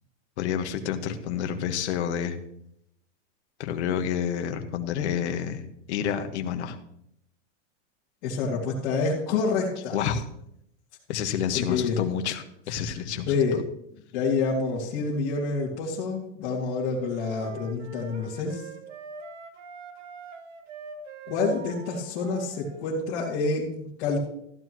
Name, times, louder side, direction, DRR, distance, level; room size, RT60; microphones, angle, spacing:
voice 1, 0.4-2.4 3.6-6.8 9.9-10.2 11.1-13.6, left 8 dB, 65° left, 6 dB, 1.6 m, -29 dB
voice 2, 8.2-10.0 11.5-12.0 13.3-13.6 14.1-18.6 21.3-24.2, left 4 dB, 40° left, -7 dB, 2.6 m, -27 dB
sound 1, 17.0-22.9, right 5 dB, 90° right, 1.7 m, -43 dB
14.5 x 11.5 x 3.1 m, 0.75 s
supercardioid pair, 170°, 36 cm